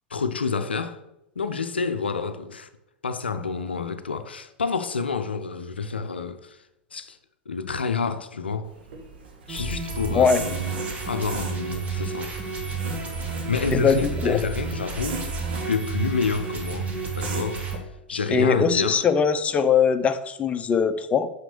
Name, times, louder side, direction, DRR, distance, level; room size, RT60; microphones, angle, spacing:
voice 1, 0.1-1.0 1.4-2.7 3.0-6.6 6.9-7.2 7.5-8.7 9.5-10.5 11.1-12.3 13.5-15.2 15.6-17.6 18.1-19.0, left 5 dB, 80° left, 0.5 m, -28 dB
sound 1, 8.6-17.8, right 4 dB, 65° right, 1.6 m, -40 dB
sound 2, 9.5-17.8, right 4 dB, 25° right, 1.8 m, -31 dB
voice 2, 13.7-14.4 18.3-21.3, left 6 dB, 20° left, 0.6 m, -21 dB
6.0 x 5.8 x 6.6 m
figure-of-eight pair, 90°, 6 cm